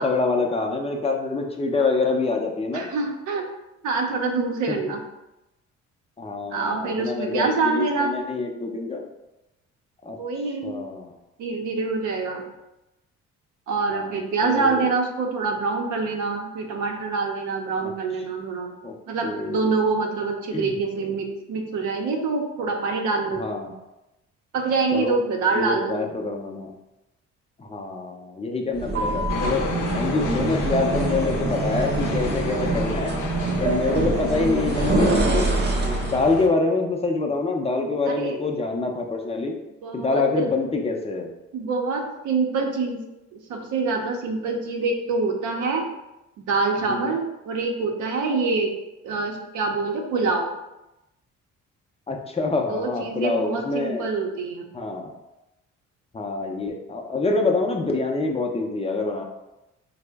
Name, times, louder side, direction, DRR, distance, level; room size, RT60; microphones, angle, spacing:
voice 1, 0.0-2.9 4.7-4.8 6.2-9.0 10.0-10.2 10.6-11.1 13.9-14.8 17.8-17.9 18.8-18.9 19.2-19.7 20.5-20.8 23.4-23.8 24.9-25.2 25.6-26.8 27.6-29.6 29.9-33.1 33.6-35.5 36.0-39.5 39.9-41.3 46.9-47.1 52.1-54.1 54.7-55.1 56.1-59.2, left 3 dB, 20° left, 2 dB, 0.5 m, -26 dB
voice 2, 2.7-3.5 3.8-5.0 6.5-8.2 10.2-10.8 11.4-12.4 13.7-18.7 19.1-23.5 24.5-26.0 38.1-38.3 39.8-40.5 41.5-43.0 43.3-45.9 46.4-48.7 49.0-50.5 52.7-54.7, right 4 dB, 75° right, 2 dB, 0.6 m, -25 dB
sound 1, 28.7-36.2, right 3 dB, 35° right, 0.6 m, -25 dB
sound 2, 29.3-36.5, left 4 dB, 85° left, 0.6 m, -32 dB
3.6 x 2.0 x 3.3 m, 0.96 s
cardioid pair, 90°, 30 cm